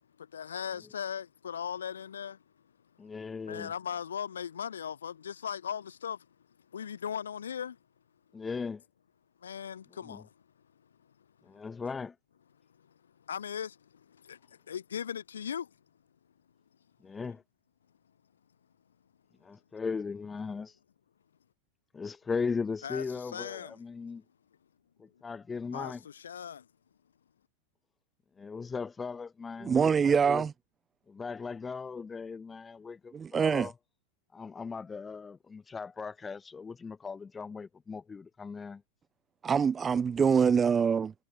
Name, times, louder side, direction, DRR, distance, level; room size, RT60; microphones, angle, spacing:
voice 1, 0.2-2.4 3.5-6.3 6.7-7.8 9.4-10.3 13.3-15.7 22.8-23.0 23.3-23.8 25.7-26.7, left 8 dB, 65° left, 1.3 m, -38 dB
voice 2, 3.0-3.7 8.3-8.8 10.0-10.2 11.4-12.1 17.0-17.4 19.4-20.7 21.9-24.2 25.0-26.0 28.4-30.5 31.1-33.7 34.3-38.8, left 5 dB, 15° left, 1.6 m, -38 dB
voice 3, 29.6-30.5 33.1-33.7 39.4-41.1, right 6 dB, 20° right, 0.4 m, -25 dB
figure-of-eight pair, 90°, 0 cm